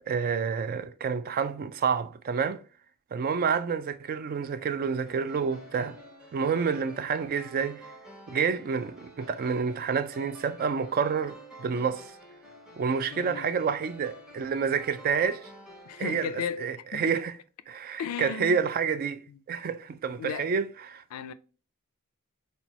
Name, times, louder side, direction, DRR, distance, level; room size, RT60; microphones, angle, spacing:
voice 1, 0.1-2.6 3.1-6.0 6.3-7.8 8.3-12.1 12.8-15.5 16.0-17.4 17.7-19.2 19.5-21.0, right 6 dB, 40° right, 0.3 m, -29 dB
sound 1, 5.1-16.1, equal, 5° right, 1.0 m, -49 dB
voice 2, 13.1-13.5 15.9-16.7 16.9-17.0 18.0-18.6 20.2-20.5 21.1-21.3, left 7 dB, 85° left, 0.4 m, -35 dB
4.2 x 2.3 x 4.0 m
head